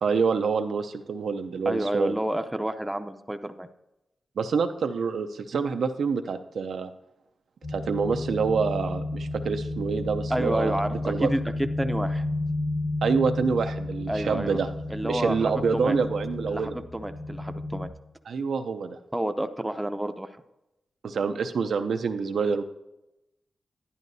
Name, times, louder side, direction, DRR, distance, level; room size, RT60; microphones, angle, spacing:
voice 1, 0.0-2.2 4.4-6.9 7.7-10.8 11.1-11.3 13.0-14.7 15.0-16.8 18.3-19.0 21.0-22.6, right 5 dB, 80° right, 8 dB, 0.5 m, -27 dB
voice 2, 1.7-3.7 10.3-12.2 14.1-14.6 14.9-16.0 16.5-17.9 19.1-20.3, right 1 dB, 10° right, 8 dB, 0.5 m, -29 dB
sound 1, 7.6-17.9, left 2 dB, 80° left, 1.4 m, -32 dB
11.0 x 10.5 x 2.7 m, 0.93 s
cardioid pair, 80°, 0 cm